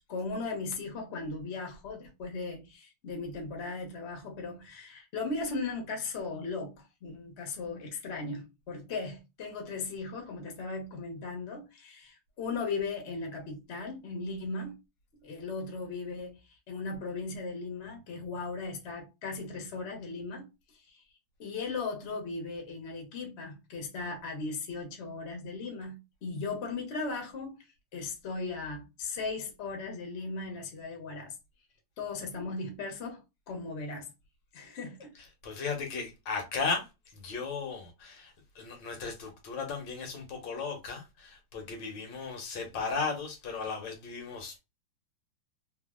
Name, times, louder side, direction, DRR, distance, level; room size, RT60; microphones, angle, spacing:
voice 1, 0.1-14.8 15.2-16.4 16.7-21.0 21.4-27.6 27.9-31.4 32.0-34.1 34.5-35.1, left 3 dB, 50° left, 0.9 m, -37 dB
voice 2, 35.1-44.6, left 4 dB, 70° left, 1.5 m, -36 dB
3.3 x 2.3 x 2.3 m
omnidirectional pair, 2.1 m